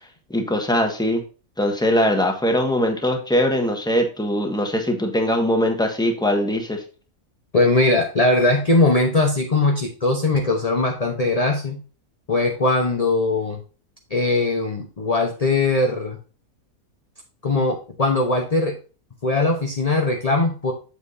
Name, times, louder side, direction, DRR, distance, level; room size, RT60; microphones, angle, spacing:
voice 1, 0.3-1.2 1.6-6.8, equal, 5° left, 3 dB, 1.4 m, -21 dB
voice 2, 7.5-11.8 12.3-13.6 14.1-16.2 17.4-18.7 19.2-20.7, left 2 dB, 30° left, 2 dB, 1.0 m, -20 dB
8.3 x 7.5 x 2.7 m, 0.35 s
omnidirectional pair, 1.5 m